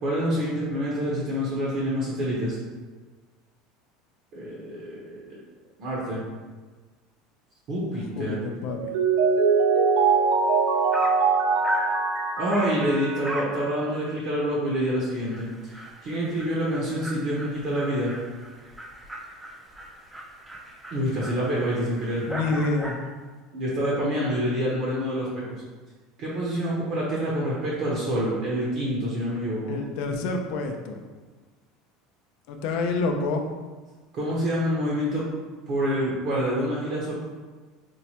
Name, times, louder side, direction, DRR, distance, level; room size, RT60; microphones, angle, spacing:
voice 1, 0.0-2.6 4.3-5.4 5.8-6.2 7.7-8.4 12.4-18.1 20.9-22.2 23.5-25.6 26.2-29.8 34.1-35.3 35.7-37.1, equal, 45° right, -6 dB, 0.7 m, -27 dB
voice 2, 8.1-8.9 22.3-23.0 29.7-31.0 32.5-33.4, left 3 dB, 60° left, 3 dB, 0.4 m, -28 dB
Mallet percussion, 8.7-13.6, right 5 dB, 80° right, 0.4 m, -23 dB
Dog, 10.5-10.6 10.9-11.2 11.6-11.9 12.5-12.8 13.2-13.6 13.9-14.0 14.4-14.5 14.9-15.0 15.3-23.1, right 1 dB, 5° right, 0.3 m, -38 dB
4.5 x 2.1 x 2.8 m, 1.4 s
cardioid pair, 160°, 0 cm